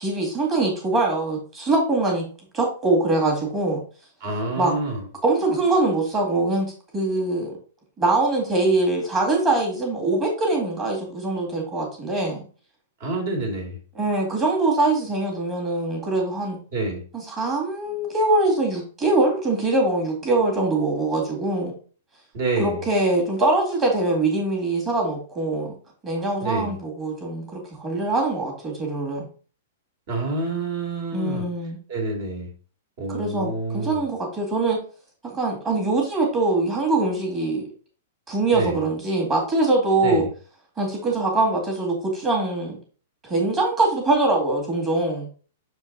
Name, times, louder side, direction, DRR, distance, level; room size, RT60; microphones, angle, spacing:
voice 1, 0.0-2.2 2.5-3.8 4.6-4.7 5.2-6.7 6.9-7.5 8.0-12.4 14.0-16.6 17.1-21.7 22.6-25.7 26.0-29.2 31.1-31.8 33.1-34.8 35.2-37.6 38.3-40.2 40.8-42.8 43.2-45.3, right 2 dB, 15° right, -1 dB, 2.1 m, -23 dB
voice 2, 4.2-5.0 13.0-13.8 16.7-17.1 22.3-22.8 26.4-26.7 30.1-31.5 31.9-32.5 33.0-34.1 38.5-38.8 40.0-40.3, right 2 dB, 40° right, 2 dB, 2.3 m, -27 dB
6.8 x 4.5 x 3.9 m, 0.39 s
hypercardioid pair, 175°, 0 cm